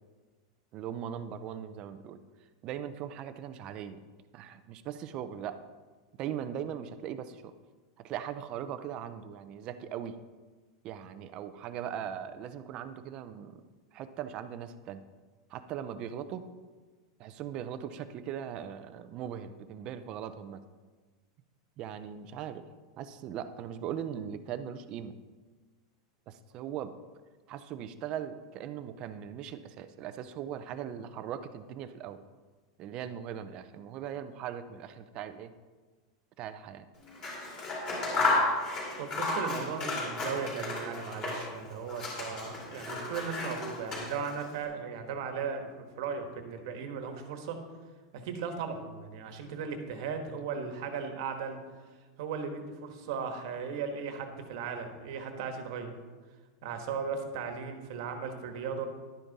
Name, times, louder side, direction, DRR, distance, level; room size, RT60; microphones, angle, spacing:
voice 1, 0.7-2.2 2.6-4.0 4.3-5.6 6.2-7.5 8.0-10.2 10.8-13.6 13.9-15.0 15.5-16.5 17.2-20.6 21.8-22.6 23.0-25.1 26.3-26.9 27.5-32.2 32.8-35.5 36.4-36.9, right 9 dB, 25° right, 11 dB, 0.5 m, -39 dB
Scissors, 37.1-41.6 41.9-44.4, left 2 dB, 25° left, 2.7 m, -33 dB
voice 2, 39.0-47.6 48.1-51.6 52.2-56.0 56.6-58.9, right 6 dB, 50° right, 6 dB, 1.3 m, -37 dB
11.5 x 9.5 x 4.1 m, 1.4 s
supercardioid pair, 180°, 3 cm